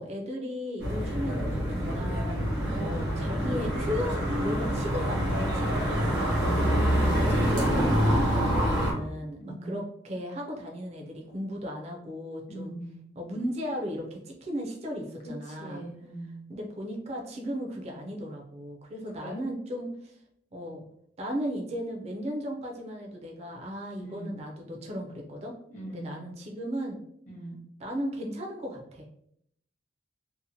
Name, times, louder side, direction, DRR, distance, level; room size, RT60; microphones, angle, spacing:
voice 1, 0.0-6.2 7.0-12.7 13.1-15.9 16.5-20.2 20.5-20.8 21.2-25.5 25.9-27.0 27.8-29.1, equal, 35° right, 0 dB, 0.4 m, -36 dB
sound 1, 0.8-8.9, equal, 85° right, 1.0 m, -26 dB
voice 2, 6.0-6.7 9.4-9.8 12.5-13.0 15.5-16.4 19.2-19.4 24.0-24.3 25.7-26.2 27.3-27.6, right 1 dB, 40° left, -3 dB, 0.9 m, -40 dB
2.8 x 2.1 x 2.6 m, 0.73 s
head